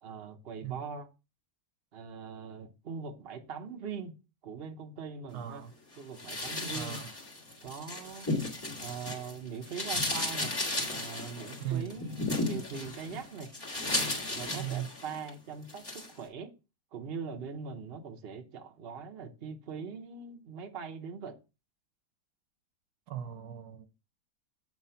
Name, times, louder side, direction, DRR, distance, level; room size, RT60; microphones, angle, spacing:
voice 1, 0.0-1.1 1.9-4.1 4.4-5.6 6.0-7.0 7.6-8.3 8.8-10.5 10.9-13.5 14.3-16.5 16.9-21.4, right 6 dB, 45° right, 1.0 m, -41 dB
voice 2, 5.3-5.7 6.7-7.1 11.6-11.9 14.5-14.9 23.1-23.9, right 10 dB, 75° right, 1.2 m, -37 dB
sound 1, 6.2-9.3 9.6-15.3 15.7-16.1, left 2 dB, 15° left, 1.9 m, -34 dB
8.3 x 3.1 x 5.6 m
omnidirectional pair, 1.7 m